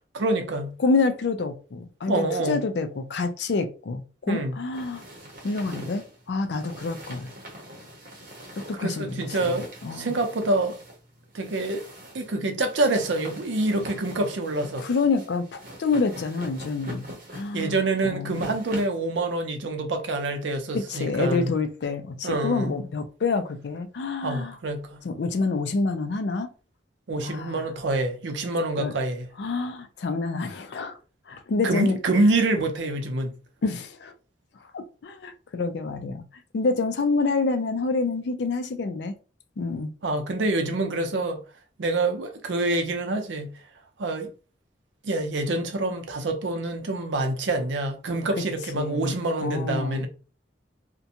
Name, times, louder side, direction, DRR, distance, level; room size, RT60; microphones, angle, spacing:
voice 1, 0.1-0.8 2.1-2.6 4.3-4.6 8.8-10.8 11.3-11.8 12.1-14.9 17.5-21.5 22.2-22.8 24.2-25.0 27.1-29.3 31.6-33.4 40.0-41.4 41.8-43.5 44.0-44.3 45.0-50.1, right 2 dB, 80° right, 0.5 m, -26 dB
voice 2, 0.8-5.0 5.4-7.3 8.6-10.2 14.8-17.1 17.3-17.7 18.0-18.5 20.7-24.6 25.0-26.5 27.2-27.6 28.8-28.9 29.4-31.0 31.3-32.0 33.6-34.1 34.7-36.2 36.5-39.1 39.6-39.9 48.7-50.1, left 3 dB, 70° left, 0.4 m, -27 dB
sound 1, 4.7-19.0, equal, 50° right, 0.8 m, -43 dB
2.5 x 2.2 x 2.7 m
head